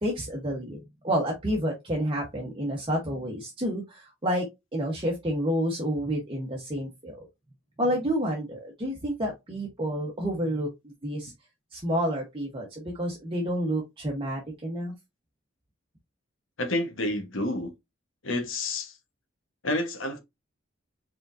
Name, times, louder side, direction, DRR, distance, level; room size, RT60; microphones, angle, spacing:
voice 1, 0.0-0.8 1.0-4.4 4.7-7.3 7.8-11.3 11.7-14.9, equal, 25° right, 1.1 m, -29 dB
voice 2, 16.6-17.7 18.2-19.0 19.6-20.2, left 1 dB, 70° left, 1.2 m, -29 dB
4.9 x 3.8 x 2.6 m
head